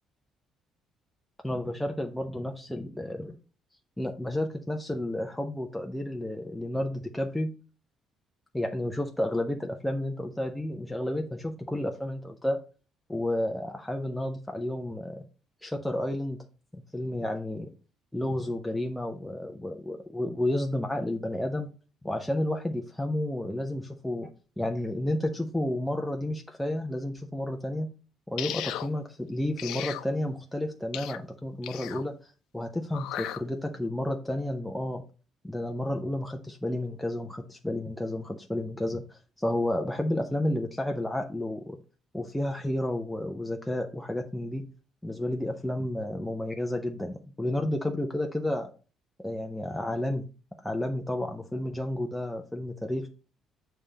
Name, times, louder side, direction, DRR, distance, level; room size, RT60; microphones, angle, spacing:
voice 1, 1.4-3.3 4.0-7.5 8.5-12.6 13.1-15.3 15.6-16.4 16.7-17.7 18.1-21.7 22.0-24.3 24.6-27.9 28.3-35.0 35.4-41.8 42.1-44.7 45.0-48.7 49.2-50.3 50.6-53.1, left 1 dB, 5° left, 3 dB, 0.4 m, -31 dB
sound 1, 28.4-28.9 29.6-30.1 30.9-31.2 31.6-32.0 32.9-33.4, left 12 dB, 85° left, 0.5 m, -35 dB
7.2 x 3.3 x 4.9 m, 0.35 s
cardioid pair, 175°, 0 cm